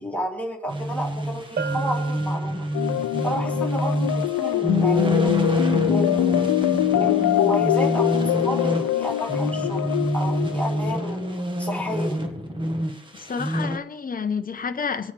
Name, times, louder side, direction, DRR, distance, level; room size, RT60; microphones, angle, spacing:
voice 1, 0.0-2.6 3.2-5.3 5.9-6.4 6.9-11.2 11.6-12.2, equal, 5° left, 3.0 m, -31 dB
sound 1, 0.7-13.8, equal, 15° right, 1.5 m, -27 dB
Bell, 1.6-3.2, right 5 dB, 30° right, 0.4 m, -34 dB
sound 2, 2.7-11.4, left 15 dB, 70° left, 0.7 m, -24 dB
voice 2, 13.1-15.1, left 6 dB, 25° left, 1.0 m, -29 dB
24.5 x 9.3 x 3.4 m
cardioid pair, 135°, 34 cm